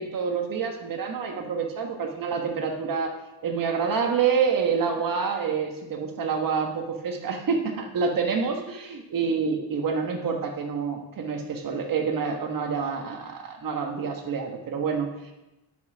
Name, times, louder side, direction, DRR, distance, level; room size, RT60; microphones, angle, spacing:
voice 1, 0.0-3.1 3.4-15.3, right 5 dB, 45° right, 3 dB, 1.5 m, -27 dB
9.5 x 5.7 x 6.2 m, 1.0 s
cardioid pair, 135°, 45 cm